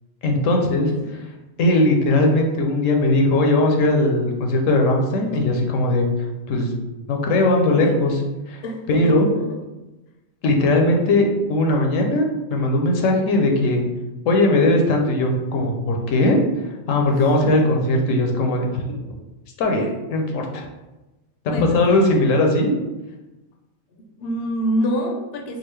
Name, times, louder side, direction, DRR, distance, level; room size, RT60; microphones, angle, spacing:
voice 1, 0.2-0.9 1.6-6.1 6.5-6.7 7.1-8.2 8.5-8.6 8.9-9.3 10.4-13.8 14.2-16.4 16.9-18.9 19.6-20.7 21.7-22.7, left 2 dB, 85° left, 2 dB, 1.0 m, -19 dB
voice 2, 8.6-9.6 17.1-17.7 21.5-22.0 24.0-25.6, equal, 65° left, 2 dB, 0.7 m, -27 dB
3.8 x 2.4 x 3.1 m, 1.1 s
omnidirectional pair, 1.3 m